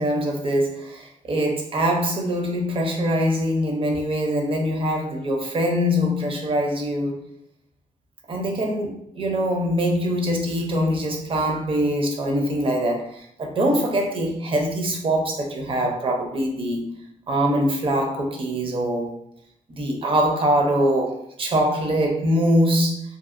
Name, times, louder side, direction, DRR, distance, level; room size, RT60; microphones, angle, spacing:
voice 1, 0.0-7.2 8.3-16.9 17.3-19.2 19.7-23.0, equal, 40° right, 1 dB, 0.6 m, -23 dB
2.6 x 2.6 x 2.5 m, 0.76 s
wide cardioid pair, 150°, 13 cm